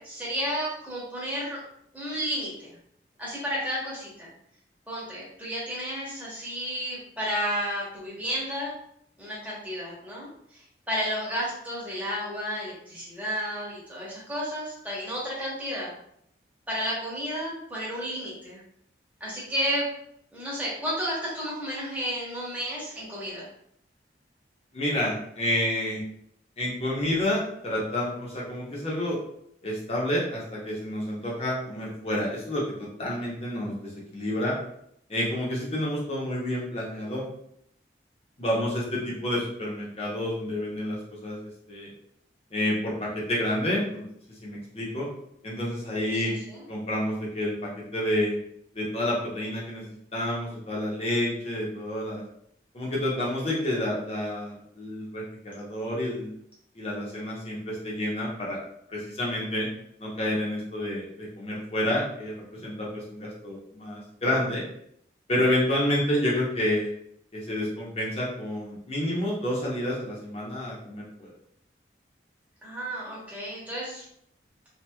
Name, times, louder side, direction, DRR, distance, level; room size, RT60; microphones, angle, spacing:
voice 1, 0.0-1.6 1.9-2.7 3.2-4.3 4.9-8.7 9.2-15.9 16.7-18.6 19.2-19.9 20.3-23.5 46.1-46.6 72.6-74.0, equal, 10° right, -7 dB, 0.9 m, -32 dB
voice 2, 24.7-26.0 26.6-29.2 29.6-34.5 35.1-37.2 38.4-41.4 41.7-41.9 42.5-44.1 44.4-45.1 45.4-46.3 46.7-48.4 48.7-49.8 50.1-52.2 52.7-56.3 56.7-58.6 58.9-59.7 60.0-64.6 65.3-66.9 67.3-71.3, left 1 dB, 35° left, -4 dB, 0.7 m, -29 dB
2.8 x 2.6 x 2.2 m, 0.71 s
head